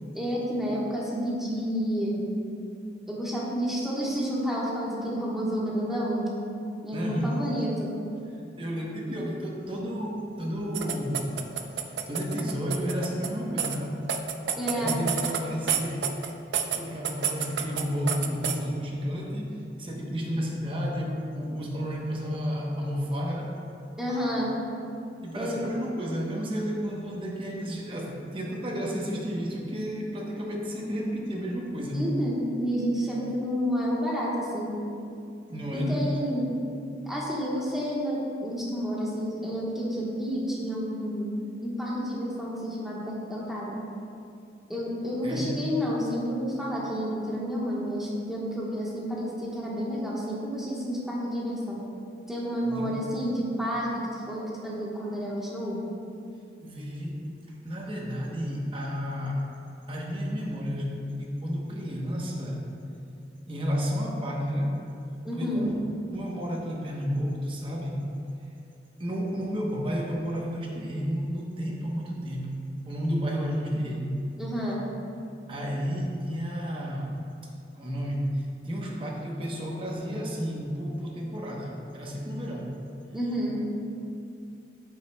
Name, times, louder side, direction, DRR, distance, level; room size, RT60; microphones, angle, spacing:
voice 1, 0.1-2.2 3.1-6.3 6.8-7.9 14.6-14.9 24.0-24.5 25.3-25.6 31.9-34.7 35.7-36.5 37.1-41.3 41.6-43.8 44.7-51.8 52.3-55.9 65.2-65.7 74.4-74.8 83.1-83.6, equal, ahead, -6 dB, 1.2 m, -30 dB
voice 2, 6.9-7.4 8.6-11.3 11.7-14.0 14.7-16.0 16.8-23.6 25.2-32.0 35.5-36.0 45.2-45.6 52.6-53.0 56.6-57.2 57.6-59.5 59.9-62.6 63.5-64.8 65.3-65.7 66.1-68.1 69.0-72.6 72.8-74.2 75.5-77.1 77.7-82.8, equal, 30° right, -2 dB, 0.9 m, -31 dB
sound 1, 10.7-13.3 13.6-13.8 14.1-15.4 15.7-16.8 17.0-18.6, right 8 dB, 75° right, 0.5 m, -29 dB
8.9 x 7.8 x 2.2 m, 2.6 s
head